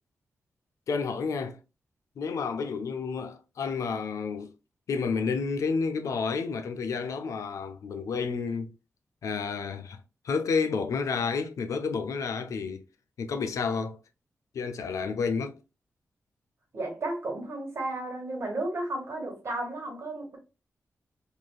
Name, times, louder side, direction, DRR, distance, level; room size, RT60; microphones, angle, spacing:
voice 1, 0.9-1.6 2.2-4.5 4.9-8.7 9.2-10.0 10.2-12.8 13.2-14.0 14.5-15.6, left 5 dB, 80° left, 0.4 m, -30 dB
voice 2, 16.7-20.4, right 2 dB, 55° right, 1.3 m, -33 dB
3.1 x 2.6 x 2.2 m
wide cardioid pair, 90°, 5 cm